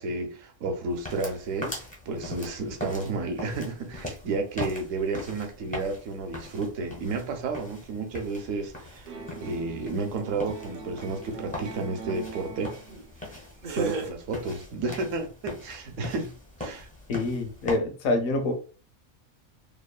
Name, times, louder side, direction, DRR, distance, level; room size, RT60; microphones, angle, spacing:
voice 1, 0.0-12.8 13.3-13.4 13.7-16.3 16.6-16.9, right 3 dB, 70° right, 1.0 m, -32 dB
sound 1, 0.9-17.8, left 1 dB, 10° left, 0.4 m, -41 dB
sound 2, 9.1-13.1 13.6-14.1, right 4 dB, 90° right, 0.4 m, -38 dB
voice 2, 17.1-18.5, left 2 dB, 75° left, 1.0 m, -26 dB
3.0 x 2.1 x 2.3 m
omnidirectional pair, 1.5 m